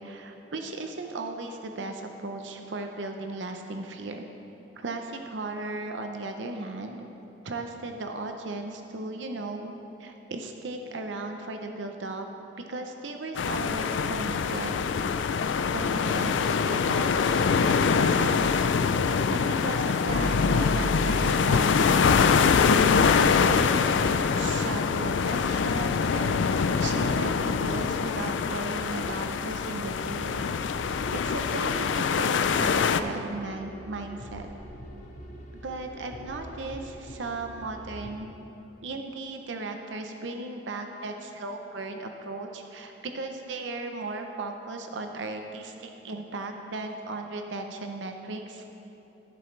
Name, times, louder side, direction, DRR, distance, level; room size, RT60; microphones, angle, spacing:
voice 1, 0.0-4.3 4.8-7.0 7.4-9.7 10.0-12.3 12.6-14.7 15.7-18.8 19.3-26.5 26.8-30.4 31.1-34.5 35.6-38.3 38.8-48.6, right 2 dB, 85° right, 4 dB, 0.7 m, -36 dB
sound 1, 13.4-33.0, left 5 dB, 85° left, 0.4 m, -24 dB
sound 2, 20.1-38.2, equal, 40° left, 1.0 m, -41 dB
14.5 x 7.6 x 3.2 m, 3.0 s
head